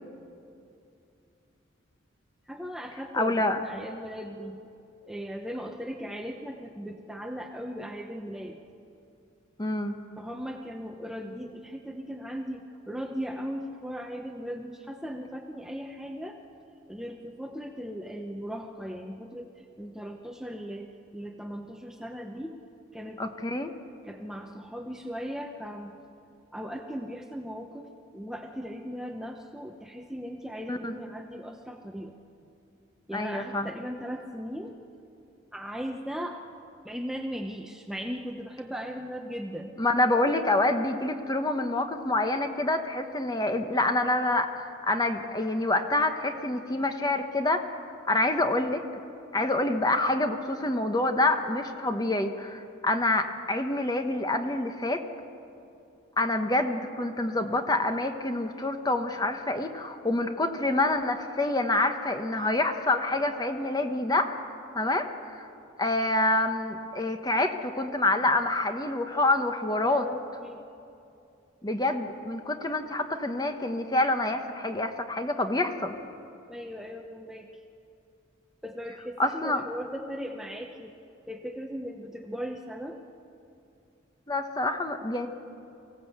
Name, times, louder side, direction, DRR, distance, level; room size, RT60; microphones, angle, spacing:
voice 1, 2.5-4.6 5.1-8.6 10.2-16.4 16.9-22.5 22.9-23.2 24.0-26.0 26.5-27.9 28.1-32.2 33.1-34.7 35.5-36.4 36.8-39.8 69.8-70.6 76.5-77.6 78.6-80.9 81.3-83.0, equal, 5° right, 3 dB, 0.8 m, -38 dB
voice 2, 3.1-3.6 9.6-10.0 23.2-23.7 30.7-30.9 33.1-33.7 39.8-47.6 48.1-48.8 49.3-55.0 56.2-64.4 64.7-65.1 65.3-65.5 65.8-70.1 71.6-75.9 79.2-79.6 84.3-85.3, left 2 dB, 20° left, 6 dB, 1.1 m, -27 dB
24.5 x 16.0 x 8.1 m, 2.6 s
head